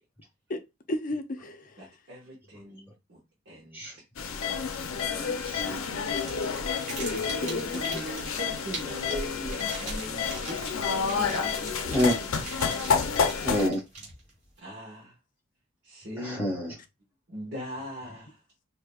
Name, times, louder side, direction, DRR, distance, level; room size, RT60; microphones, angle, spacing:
voice 1, 0.9-1.8 6.4-6.7 7.0-8.0 12.8-12.9, left 1 dB, 40° left, 0.5 m, -34 dB
voice 2, 1.8-3.9 4.5-4.7 4.9-5.4 7.4-12.0 14.6-15.2 15.8-16.5 17.3-18.4, equal, 55° right, 1.3 m, -41 dB
sound 1, 4.2-13.7, left 6 dB, 85° left, 0.6 m, -30 dB
voice 3, 4.7-5.8 6.4-6.5 11.9-12.1 13.4-14.1 16.2-16.7, equal, 10° right, 2.2 m, -29 dB
sound 2, 6.0-14.5, right 3 dB, 40° right, 2.2 m, -42 dB
4.9 x 2.7 x 2.3 m
head